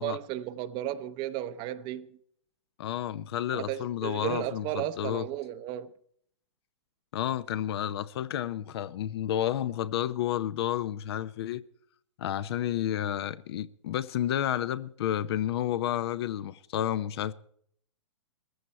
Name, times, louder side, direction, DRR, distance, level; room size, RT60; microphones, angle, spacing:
voice 1, 0.0-2.2 3.5-5.9, right 13 dB, 30° right, 0.7 m, -34 dB
voice 2, 2.8-5.3 7.1-11.6 12.2-17.3, left 11 dB, 55° left, 0.7 m, -31 dB
18.0 x 14.5 x 4.3 m
hypercardioid pair, 135°, 16 cm